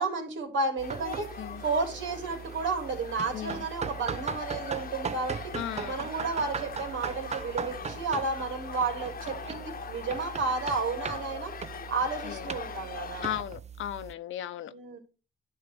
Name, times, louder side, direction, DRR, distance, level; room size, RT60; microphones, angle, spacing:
voice 1, 0.0-1.3 1.6-5.5 5.8-11.5 11.9-13.3 14.7-15.0, right 3 dB, 75° right, 3.3 m, -32 dB
sound 1, 0.8-13.4, left 7 dB, 45° left, 1.1 m, -42 dB
sound 2, 0.8-14.1, right 6 dB, 35° right, 0.7 m, -39 dB
voice 2, 3.3-3.6 5.5-6.1 12.2-12.5 13.2-14.7, left 11 dB, 75° left, 1.0 m, -36 dB
11.0 x 4.8 x 6.2 m
cardioid pair, 90°, 20 cm